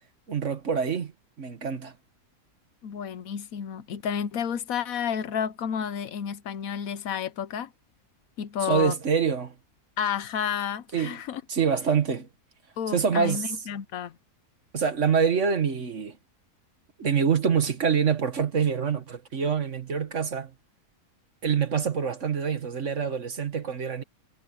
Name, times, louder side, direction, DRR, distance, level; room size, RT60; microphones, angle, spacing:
voice 1, 0.3-1.1 1.4-1.9 8.6-9.5 10.9-11.2 11.5-12.3 12.9-13.5 14.7-16.2 17.0-20.5 21.4-24.0, right 6 dB, 55° right, 1.8 m, -25 dB
voice 2, 2.8-7.7 8.4-9.0 10.0-11.4 12.8-14.2, left 8 dB, 70° left, 1.2 m, -31 dB
omnidirectional pair, 1.6 m